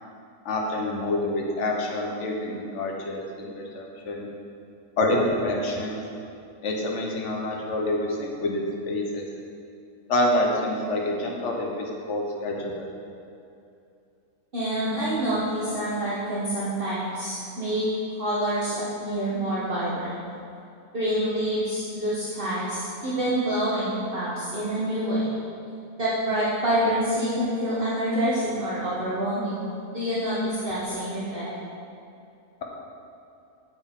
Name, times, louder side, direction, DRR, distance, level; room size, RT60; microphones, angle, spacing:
voice 1, 0.4-4.3 5.0-6.0 6.6-9.2 10.1-12.9, left 1 dB, 50° left, 0 dB, 1.4 m, -27 dB
voice 2, 14.5-17.9 18.2-20.1 20.9-25.3 25.9-29.6 29.9-31.5, right 1 dB, 35° right, -9 dB, 1.5 m, -27 dB
8.6 x 8.2 x 3.8 m, 2.6 s
omnidirectional pair, 1.6 m